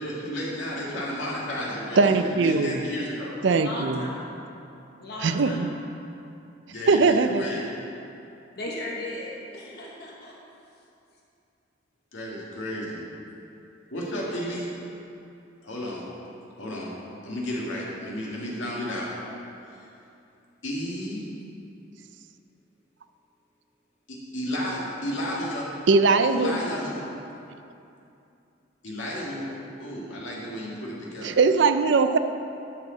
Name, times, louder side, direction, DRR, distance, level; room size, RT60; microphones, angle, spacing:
voice 1, 0.0-3.4 6.7-7.7 12.1-13.0 13.9-14.7 15.6-16.0 16.6-16.9 17.2-19.1 20.6-21.2 24.1-25.7 26.3-27.1 28.8-29.5 29.8-31.4, equal, 80° left, -5 dB, 2.1 m, -32 dB
voice 2, 2.0-2.8 3.4-4.1 5.2-5.7 6.9-7.4 25.9-26.6 31.2-32.2, right 4 dB, 70° right, 9 dB, 0.5 m, -20 dB
voice 3, 3.6-4.2 5.0-5.6 8.6-10.3, left 1 dB, 55° left, -3 dB, 1.3 m, -36 dB
12.5 x 6.4 x 4.0 m, 2.7 s
head